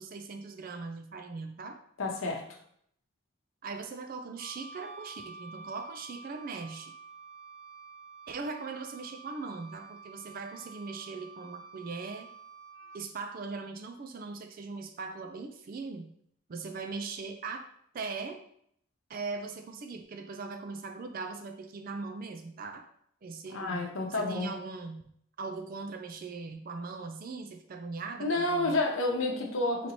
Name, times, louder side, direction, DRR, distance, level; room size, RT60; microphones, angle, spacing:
voice 1, 0.0-1.8 3.6-6.9 8.3-12.3 12.9-16.1 16.5-17.6 17.9-18.4 19.1-22.8 23.2-23.9 24.2-28.8, right 4 dB, 45° right, 6 dB, 0.4 m, -40 dB
voice 2, 2.0-2.4 23.5-24.5 28.2-29.9, left 2 dB, 75° left, 1 dB, 0.8 m, -29 dB
Wind instrument woodwind instrument, 4.4-13.0, right 4 dB, 70° right, 0.8 m, -49 dB
3.2 x 2.9 x 4.1 m, 0.68 s
head